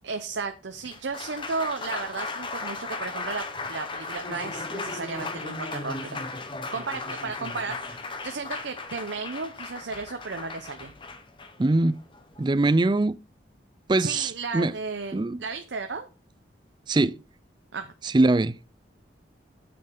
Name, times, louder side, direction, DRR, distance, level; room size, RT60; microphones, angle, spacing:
voice 1, 0.0-6.2 6.7-10.9 14.0-16.1 17.7-17.9, right 4 dB, 70° right, 0.8 m, -34 dB
Applause, 0.7-13.0, left 3 dB, 25° left, 0.9 m, -36 dB
voice 2, 11.6-12.0 12.4-13.2 13.9-14.7 15.1-15.4 16.9-17.2 18.0-18.6, right 2 dB, 25° right, 0.4 m, -22 dB
9.1 x 7.7 x 3.8 m
head